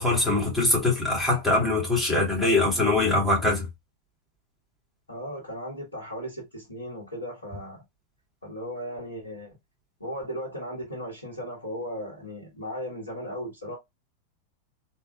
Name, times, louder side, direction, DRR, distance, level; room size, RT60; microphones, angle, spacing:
voice 1, 0.0-3.7, left 2 dB, ahead, 3.0 m, -23 dB
voice 2, 5.1-7.8 8.4-9.5 10.0-13.8, equal, 80° left, 1.5 m, -36 dB
4.0 x 3.9 x 2.2 m
figure-of-eight pair, 90°, 0 cm